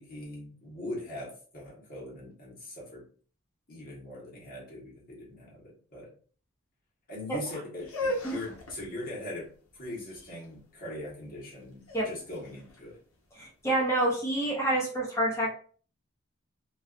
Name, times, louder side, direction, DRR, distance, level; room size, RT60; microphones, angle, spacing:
voice 1, 0.0-3.1 3.7-6.1 7.1-13.0, left 1 dB, 40° left, -4 dB, 1.0 m, -41 dB
sound 1, 7.8-13.7, left 1 dB, 75° left, 0.7 m, -39 dB
voice 2, 13.4-15.5, right 1 dB, 15° left, -4 dB, 0.7 m, -27 dB
2.4 x 2.3 x 2.4 m, 0.42 s
head